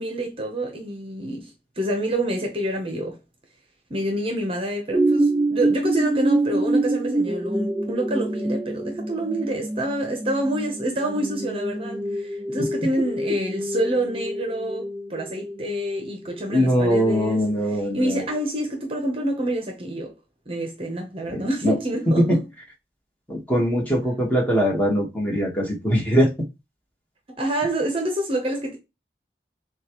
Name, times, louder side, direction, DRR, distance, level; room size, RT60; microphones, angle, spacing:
voice 1, 0.0-3.2 3.9-17.4 17.7-20.2 20.5-22.4 27.4-28.8, right 1 dB, 30° right, 0.8 m, -27 dB
sound 1, 4.9-18.5 19.0-19.1, right 2 dB, 10° right, 0.3 m, -27 dB
voice 2, 16.5-18.2 21.3-21.8 22.1-22.4 23.3-26.3, equal, 10° left, 1.4 m, -21 dB
7.0 x 2.4 x 3.0 m
head